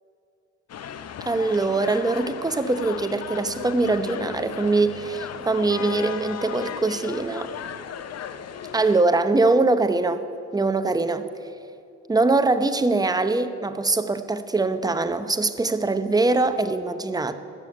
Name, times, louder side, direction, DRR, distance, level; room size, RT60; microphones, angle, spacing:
sound 1, 0.7-9.0, left 8 dB, 55° left, 0.8 m, -36 dB
voice 1, 1.2-7.5 8.7-10.2 10.5-11.3 12.1-17.3, right 3 dB, 15° right, 10 dB, 0.8 m, -22 dB
13.5 x 7.0 x 9.4 m, 2.5 s
cardioid pair, 90°, 30 cm